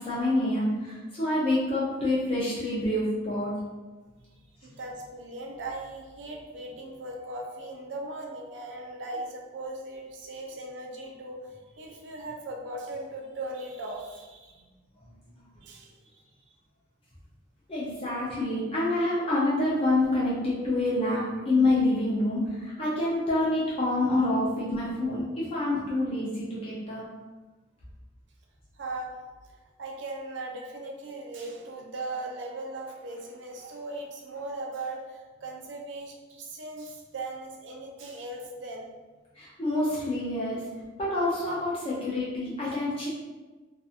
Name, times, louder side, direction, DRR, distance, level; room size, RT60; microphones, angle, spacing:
voice 1, 0.0-3.5 17.7-27.0 39.4-40.6 41.0-43.1, left 2 dB, 30° left, -8 dB, 0.5 m, -27 dB
voice 2, 4.6-14.6 15.6-16.2 28.8-29.1 29.8-38.9, right 2 dB, 70° right, -1 dB, 0.5 m, -38 dB
2.6 x 2.5 x 2.4 m, 1.2 s
head